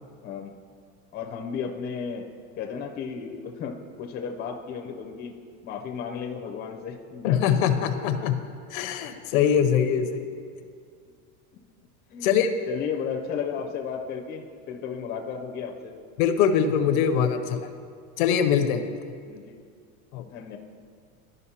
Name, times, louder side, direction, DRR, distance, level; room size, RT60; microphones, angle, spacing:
voice 1, 0.2-0.5 1.1-2.3 2.6-5.3 5.6-7.6 12.1-12.4 12.7-15.9 19.2-19.6 20.2-20.6, left 6 dB, 25° left, 2 dB, 0.5 m, -34 dB
voice 2, 7.2-8.3 8.7-10.3 12.2-12.5 16.2-17.7 18.2-18.9 20.1-20.2, left 8 dB, 80° left, 8 dB, 0.7 m, -23 dB
12.0 x 5.3 x 2.8 m, 2.2 s
supercardioid pair, 140°, 41 cm